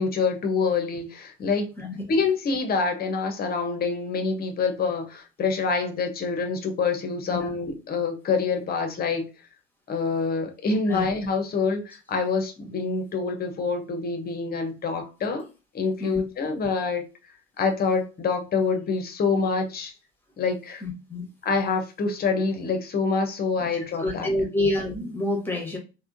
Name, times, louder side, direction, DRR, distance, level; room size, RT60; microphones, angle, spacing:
voice 1, 0.0-1.7 2.1-9.3 9.9-15.4 15.7-17.0 17.6-19.9 20.4-20.8 21.4-24.3, left 4 dB, 30° left, 0.8 m, -26 dB
voice 2, 20.8-21.2 24.0-25.8, left 2 dB, 5° left, 1.2 m, -28 dB
3.5 x 2.2 x 2.5 m
figure-of-eight pair, 60°, 33 cm